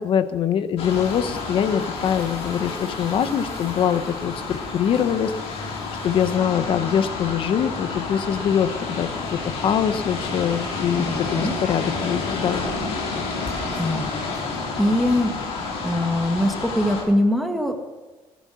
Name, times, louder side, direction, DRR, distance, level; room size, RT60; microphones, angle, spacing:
voice 1, 0.0-12.7, left 8 dB, 55° left, 11 dB, 1.1 m, -23 dB
sound 1, 0.8-17.0, left 3 dB, 75° left, 4.6 m, -30 dB
voice 2, 11.0-11.5 13.8-14.1 14.8-15.3 15.8-17.8, left 1 dB, ahead, 3 dB, 2.1 m, -22 dB
16.0 x 11.5 x 6.3 m, 1.2 s
cardioid pair, 125°, 10 cm